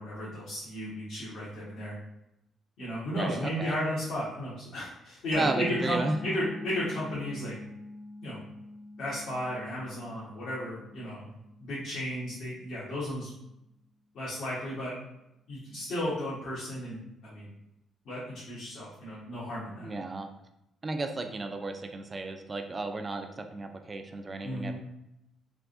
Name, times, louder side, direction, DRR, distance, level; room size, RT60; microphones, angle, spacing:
voice 1, 0.0-1.9 2.8-7.5 8.2-8.4 9.0-13.3 14.1-15.0 15.5-17.5 18.0-19.9 24.4-24.8, equal, 75° left, -10 dB, 1.2 m, -34 dB
voice 2, 3.1-3.7 5.3-6.2 19.8-20.3 20.8-24.8, right 2 dB, 30° right, 6 dB, 0.4 m, -33 dB
Mallet percussion, 5.3-12.7, left 2 dB, 50° left, 0.5 m, -45 dB
3.5 x 2.5 x 2.5 m, 0.84 s
cardioid pair, 90°, 0 cm